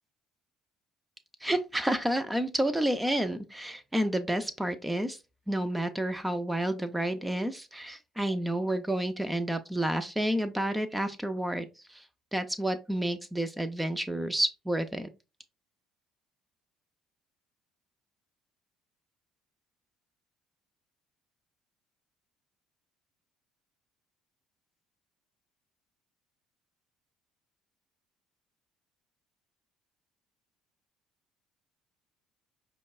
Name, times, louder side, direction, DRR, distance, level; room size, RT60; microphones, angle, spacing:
voice 1, 1.4-5.2 5.5-12.0 12.3-15.1, right 1 dB, 10° right, 0.4 m, -30 dB
5.1 x 2.2 x 2.3 m
hypercardioid pair, 65°, 0 cm